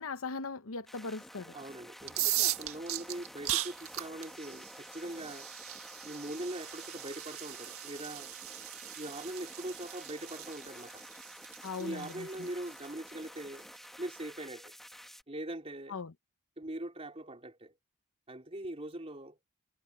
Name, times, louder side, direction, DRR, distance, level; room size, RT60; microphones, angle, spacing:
voice 1, 0.0-1.5 11.6-12.5 15.9-16.1, left 4 dB, 75° left, 0.9 m, -39 dB
sound 1, 0.9-15.2, equal, ahead, 1.7 m, -51 dB
voice 2, 1.5-5.5 6.0-8.3 9.0-11.0 11.8-13.7 14.0-14.8 15.3-16.0 16.6-17.7 18.3-19.4, right 1 dB, 30° right, 3.7 m, -42 dB
sound 2, 2.0-13.8, right 14 dB, 80° right, 1.6 m, -39 dB
head